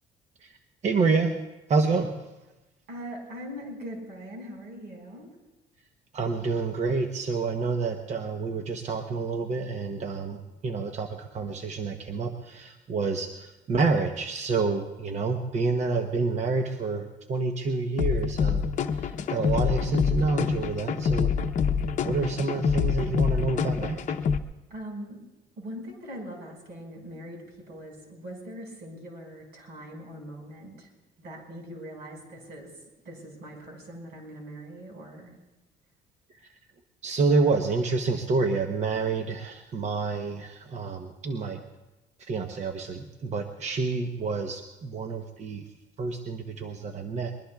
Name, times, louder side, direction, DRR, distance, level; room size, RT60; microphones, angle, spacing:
voice 1, 0.8-1.3 1.7-2.3 6.1-18.6 18.9-21.3 22.0-24.2 37.0-41.6 42.2-45.7 46.0-47.3, right 4 dB, 45° right, 5 dB, 0.9 m, -28 dB
voice 2, 2.9-5.3 24.7-25.2 25.6-30.9 31.2-35.4, equal, 75° right, 1 dB, 5.3 m, -41 dB
sound 1, 18.0-24.4, left 6 dB, 50° left, 0.7 m, -26 dB
23.0 x 21.5 x 2.4 m, 1.0 s
cardioid pair, 110°, 17 cm